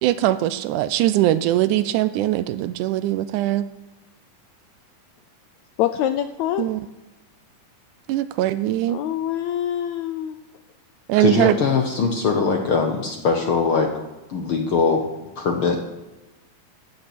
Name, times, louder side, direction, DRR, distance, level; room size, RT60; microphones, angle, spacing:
voice 1, 0.0-3.7 6.6-6.8 8.1-9.0 11.1-11.6, right 14 dB, 80° right, 14 dB, 2.0 m, -21 dB
voice 2, 5.8-6.7 8.9-10.4, left 11 dB, 80° left, 10 dB, 1.7 m, -25 dB
voice 3, 11.2-13.9 14.3-15.0 15.4-15.8, left 5 dB, 60° left, 3 dB, 1.4 m, -21 dB
15.0 x 8.7 x 6.0 m, 1.1 s
omnidirectional pair, 3.7 m